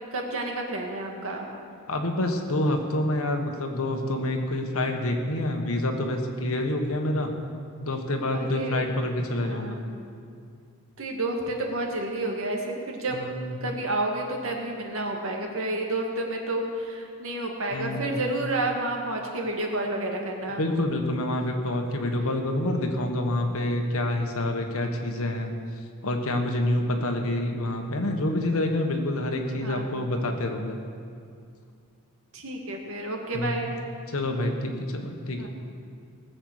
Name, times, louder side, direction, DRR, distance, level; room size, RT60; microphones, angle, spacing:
voice 1, 0.1-1.5 8.3-8.9 9.4-9.9 11.0-13.2 13.6-20.6 29.5-29.9 32.3-33.7 35.4-35.5, right 2 dB, 65° right, 1 dB, 2.1 m, -30 dB
voice 2, 1.9-7.3 7.8-9.8 13.1-13.5 17.7-18.2 20.6-25.5 26.0-30.8 33.3-33.7 34.1-35.5, left 1 dB, 65° left, 4 dB, 1.5 m, -27 dB
19.0 x 7.9 x 6.6 m, 2.3 s
head